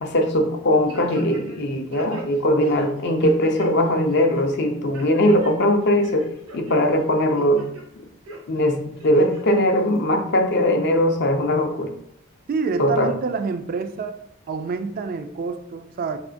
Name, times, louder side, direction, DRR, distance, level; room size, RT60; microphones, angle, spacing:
voice 1, 0.0-6.3 6.5-7.6 8.5-11.9 12.8-13.1, left 1 dB, 55° left, 4 dB, 0.5 m, -20 dB
sound 1, 0.9-1.6 1.9-3.7 4.1-4.5 4.9-5.5 5.9-6.8 7.2-7.8 8.3-8.4 9.0-9.6 10.0-10.1, right 1 dB, 80° right, 0.9 m, -38 dB
voice 2, 12.5-14.2 14.5-16.2, right 4 dB, 45° right, 9 dB, 0.3 m, -27 dB
3.6 x 3.4 x 2.5 m, 0.72 s
head